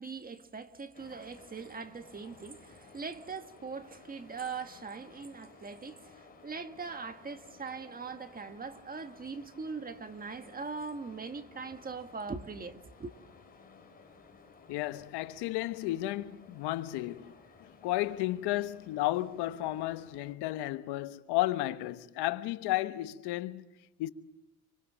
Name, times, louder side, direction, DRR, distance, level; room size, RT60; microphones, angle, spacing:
voice 1, 0.0-13.1, right 4 dB, 20° right, 1.6 m, -41 dB
sound 1, 0.9-20.3, left 4 dB, 20° left, 4.8 m, -57 dB
voice 2, 14.7-17.3 17.6-23.6 24.0-24.1, left 16 dB, 80° left, 1.2 m, -33 dB
27.5 x 25.0 x 7.4 m
cardioid pair, 115°, 40 cm